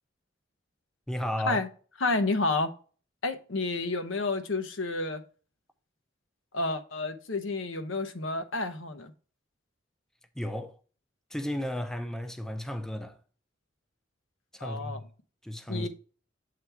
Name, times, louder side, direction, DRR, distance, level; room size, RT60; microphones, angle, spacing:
voice 1, 1.1-1.6 10.4-10.8 11.3-13.2 14.5-15.1 15.4-15.9, left 1 dB, 5° left, 0.5 m, -33 dB
voice 2, 2.0-2.7 3.2-5.2 6.5-9.1 14.6-15.0 15.7-15.9, left 3 dB, 85° left, 0.9 m, -30 dB
7.7 x 3.4 x 4.4 m
head